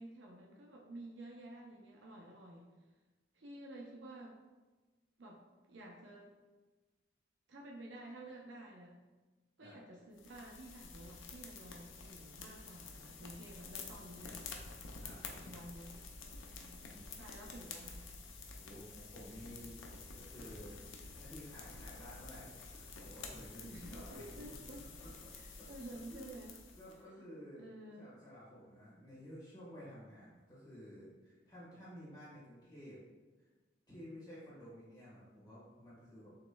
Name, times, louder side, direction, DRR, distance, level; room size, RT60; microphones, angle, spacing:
voice 1, 0.0-2.7 3.3-4.4 5.2-5.4 5.7-6.4 7.5-9.0 9.6-14.5 15.3-16.1 17.1-18.1 23.6-24.8 25.3-26.6 27.2-27.3 27.6-28.1, right 1 dB, 70° right, -1 dB, 0.6 m, -51 dB
sound 1, 10.2-27.0, left 4 dB, 90° left, 0.6 m, -50 dB
voice 2, 13.6-14.0 15.0-15.2 16.5-17.1 18.6-19.8 20.1-25.3 25.6-27.7 28.0-33.0 33.4-33.5 33.9-36.3, equal, 20° left, -9 dB, 1.4 m, -53 dB
6.5 x 3.0 x 2.2 m, 1.3 s
head